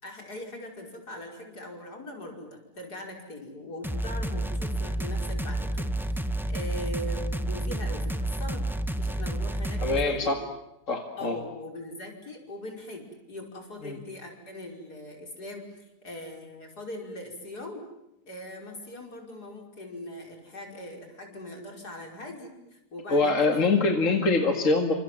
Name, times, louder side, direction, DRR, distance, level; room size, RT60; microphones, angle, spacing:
voice 1, 0.0-8.7 9.0-10.4 11.2-17.9 18.3-23.6, left 1 dB, 70° left, 2 dB, 5.9 m, -41 dB
sound 1, 3.8-10.0, right 1 dB, ahead, 1.0 m, -30 dB
voice 2, 9.8-10.4 10.9-11.4 13.8-14.0 23.1-25.0, left 3 dB, 50° left, 4 dB, 2.5 m, -24 dB
29.0 x 27.0 x 7.6 m, 0.86 s
omnidirectional pair, 1.7 m